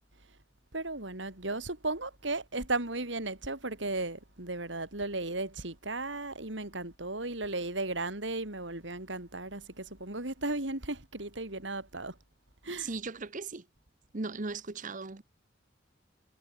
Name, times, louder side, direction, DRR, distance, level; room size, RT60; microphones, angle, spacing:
voice 1, 0.7-12.2 12.6-12.9, right 2 dB, 70° right, 4.3 m, -35 dB
voice 2, 12.8-13.7 14.1-15.2, right 3 dB, 45° right, 1.1 m, -37 dB
head